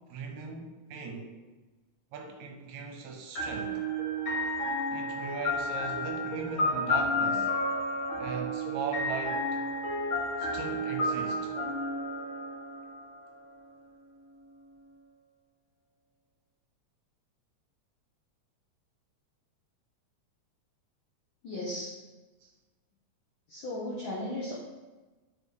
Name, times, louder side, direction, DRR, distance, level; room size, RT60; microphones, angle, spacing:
voice 1, 0.0-1.3 2.1-3.8 4.9-7.5 8.2-9.6 10.4-11.5 22.4-22.5, right 4 dB, 80° right, 3 dB, 2.0 m, -39 dB
sound 1, 3.3-13.1, left 1 dB, 50° left, 2.2 m, -31 dB
voice 2, 21.4-22.0 23.5-24.6, left 1 dB, 75° left, -4 dB, 1.1 m, -36 dB
5.1 x 4.3 x 4.8 m, 1.2 s
omnidirectional pair, 3.3 m